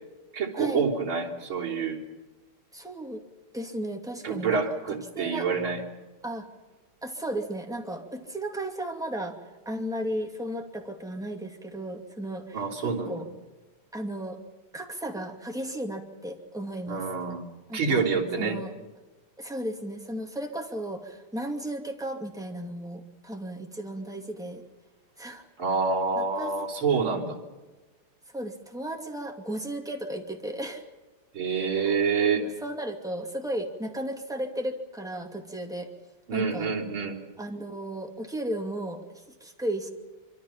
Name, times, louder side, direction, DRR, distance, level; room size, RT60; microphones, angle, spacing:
voice 1, 0.3-2.0 4.2-5.8 12.5-13.2 16.9-17.4 17.7-18.6 25.6-27.4 31.3-32.4 36.3-37.2, right 5 dB, 70° right, -2 dB, 4.1 m, -27 dB
voice 2, 2.7-3.2 3.5-4.6 5.1-5.5 6.2-6.5 7.0-9.4 9.7-13.3 13.9-14.4 14.7-17.1 17.7-18.0 18.4-18.7 19.4-24.6 25.2-25.5 26.1-26.5 26.9-27.2 28.3-30.8 31.8-32.0 32.3-35.9 36.3-36.7 37.4-39.0 39.4-39.9, right 1 dB, ahead, 2 dB, 2.3 m, -35 dB
25.5 x 25.0 x 5.7 m, 1.2 s
omnidirectional pair, 2.4 m